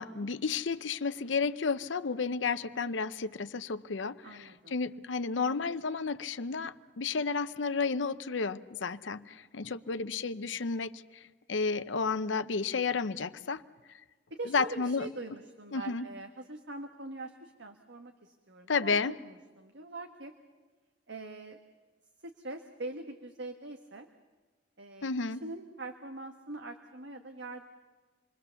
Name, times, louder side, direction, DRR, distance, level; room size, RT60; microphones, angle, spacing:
voice 1, 0.0-11.2 11.5-13.6 14.4-15.1 15.7-16.0 18.7-19.2 25.0-25.4, left 4 dB, 85° left, 13 dB, 0.7 m, -32 dB
voice 2, 4.2-4.8 9.6-10.1 14.3-19.0 19.2-20.3 21.1-21.6 22.2-24.1 24.8-27.7, right 2 dB, 70° right, 5 dB, 1.4 m, -43 dB
28.0 x 21.0 x 7.0 m, 1.3 s
head